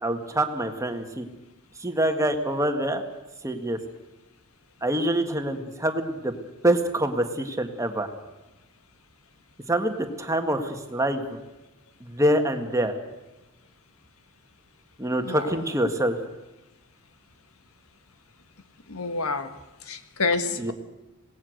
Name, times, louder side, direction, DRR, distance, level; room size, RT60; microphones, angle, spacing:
voice 1, 0.0-1.2 1.8-3.0 3.4-3.8 4.8-6.3 6.6-8.1 9.7-11.4 12.0-12.9 15.0-16.2 20.6-20.7, right 1 dB, 15° right, 6 dB, 1.7 m, -25 dB
voice 2, 18.9-19.5 19.9-20.7, left 3 dB, 90° left, 9 dB, 1.6 m, -28 dB
26.5 x 18.5 x 6.5 m, 1.0 s
head